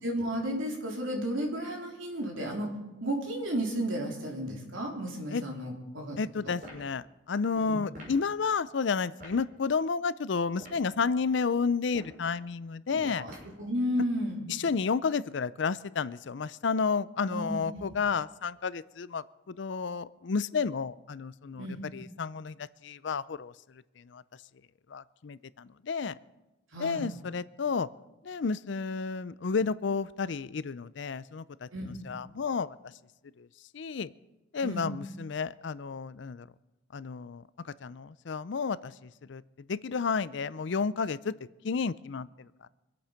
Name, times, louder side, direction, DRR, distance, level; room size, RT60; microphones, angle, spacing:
voice 1, 0.0-2.7 3.0-6.2 6.4-6.5 7.6-7.8 12.9-14.4 17.3-17.8 21.6-21.8 26.7-27.1 31.7-32.0 34.6-34.9, equal, 80° right, 0 dB, 3.6 m, -33 dB
voice 2, 6.2-13.2 14.5-21.7 21.9-23.5 24.0-24.2 24.9-26.2 26.8-27.9 28.2-32.8 33.4-33.5 33.7-34.1 34.5-36.5 36.9-39.4 39.7-42.3, left 5 dB, 65° left, 18 dB, 0.5 m, -31 dB
sound 1, 6.6-6.9 7.9-8.2 9.2-9.4 10.5-10.9 11.8-12.2 13.3-13.6, equal, 45° right, 6.4 m, -47 dB
24.5 x 8.6 x 5.8 m, 1.0 s
head